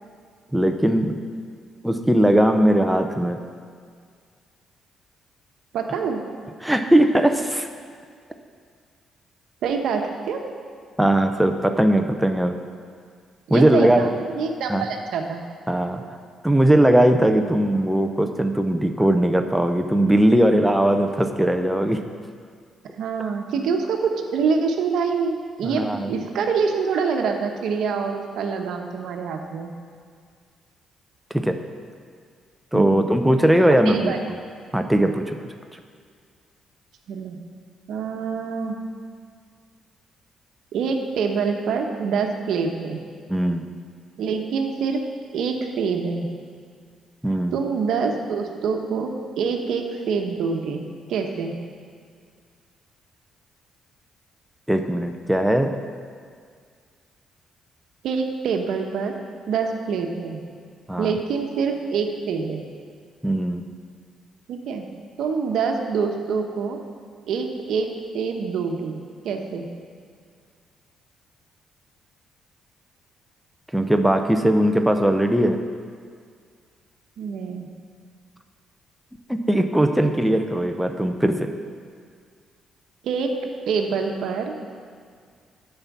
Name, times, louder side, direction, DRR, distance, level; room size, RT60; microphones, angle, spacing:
voice 1, 0.5-1.2 1.8-3.4 6.6-7.7 11.0-12.5 13.5-14.1 14.7-14.8 15.7-16.0 16.4-22.0 25.6-26.1 31.3-31.6 32.7-34.1 34.7-35.4 43.3-43.6 47.2-47.6 54.7-55.7 60.9-61.2 63.2-63.6 73.7-75.6 79.3-81.5, right 1 dB, 5° right, 5 dB, 0.6 m, -19 dB
voice 2, 5.7-6.2 9.6-10.4 13.5-15.4 23.0-25.8 26.1-29.7 32.7-33.2 33.8-34.2 37.1-37.4 37.9-38.8 40.7-43.0 44.2-45.0 45.3-46.3 47.5-50.8 51.1-51.6 58.0-59.1 59.5-60.4 61.0-62.7 64.5-64.9 65.2-66.8 67.3-67.9 68.1-69.7 77.2-77.7 83.0-83.3 83.7-84.5, right 5 dB, 75° right, 3 dB, 1.0 m, -25 dB
8.8 x 5.8 x 7.2 m, 2.1 s
cardioid pair, 90°, 0 cm